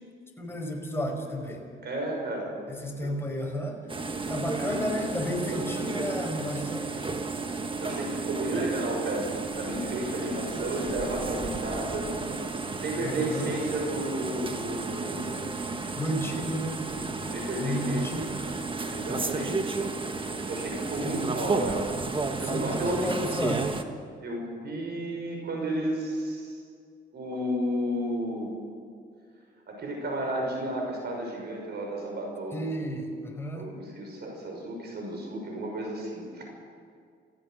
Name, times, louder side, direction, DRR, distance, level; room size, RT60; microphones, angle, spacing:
voice 1, 0.4-1.7 2.7-3.9 4.3-6.9 13.0-13.6 15.9-16.8 17.6-18.3 21.0-21.3 22.4-23.7 32.5-33.7, equal, 10° left, 1 dB, 4.9 m, -32 dB
voice 2, 1.8-2.6 3.0-3.1 4.6-4.8 5.5-5.6 7.8-12.1 12.8-15.5 17.2-18.1 18.9-19.9 20.5-21.8 22.4-23.3 24.2-26.6 27.1-28.5 29.7-32.6 33.5-36.4, right 1 dB, 55° right, 1 dB, 5.8 m, -32 dB
sound 1, 3.9-23.8, right 3 dB, 25° right, 1.5 m, -33 dB
28.0 x 15.5 x 6.5 m, 2.2 s
cardioid pair, 90°, 20 cm